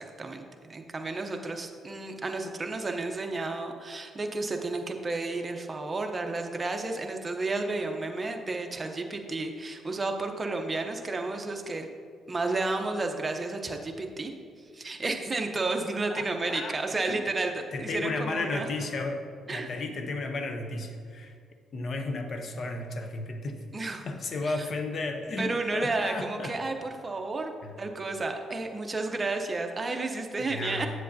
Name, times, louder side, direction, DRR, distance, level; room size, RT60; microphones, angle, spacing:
voice 1, 0.0-11.9 12.3-14.3 14.7-18.7 19.5-19.7 23.7-24.1 24.4-24.6 25.4-27.5 27.8-30.9, right 3 dB, 25° right, 4 dB, 0.7 m, -32 dB
voice 2, 16.1-17.2 17.7-21.3 21.7-23.6 24.1-26.5 27.6-27.7 30.4-30.9, left 3 dB, 50° left, 5 dB, 0.8 m, -34 dB
7.7 x 7.3 x 2.7 m, 2.1 s
cardioid pair, 90°, 0 cm